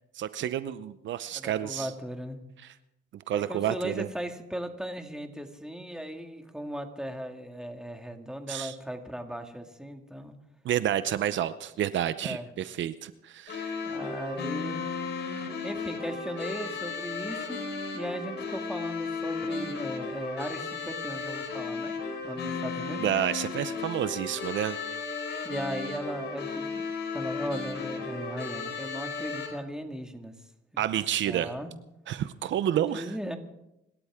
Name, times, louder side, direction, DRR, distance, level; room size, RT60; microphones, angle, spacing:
voice 1, 0.1-1.9 2.6-2.7 3.3-4.1 8.5-8.7 10.6-13.8 15.3-15.5 23.0-24.8 30.8-31.5 32.1-33.1, right 11 dB, 70° right, 13 dB, 0.7 m, -30 dB
voice 2, 1.3-2.4 3.3-10.3 12.2-12.5 13.8-14.8 15.6-17.6 17.9-21.9 22.2-23.0 25.4-26.9 27.1-30.3 31.2-31.7 32.7-33.4, equal, 5° right, 5 dB, 2.1 m, -37 dB
sound 1, 13.5-29.5, left 4 dB, 60° left, 4.4 m, -35 dB
26.5 x 13.0 x 3.7 m, 0.87 s
cardioid pair, 90°, 20 cm